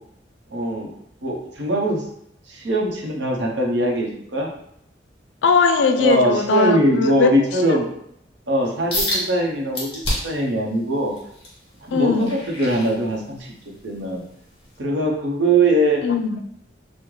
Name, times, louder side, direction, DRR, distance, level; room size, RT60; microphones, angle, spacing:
voice 1, 0.5-0.9 1.2-2.0 2.5-4.5 6.0-7.9 8.5-11.1 11.9-13.5 13.8-14.2 14.8-16.0, right 1 dB, 75° right, -1 dB, 0.7 m, -21 dB
voice 2, 5.4-7.3 11.9-12.4 16.0-16.4, left 4 dB, 80° left, 7 dB, 0.3 m, -19 dB
sound 1, 8.9-9.2 9.7-10.4 10.9-13.5 14.0-14.2 14.8-14.9, left 1 dB, 30° left, 1.2 m, -27 dB
3.7 x 2.1 x 3.0 m, 0.71 s
head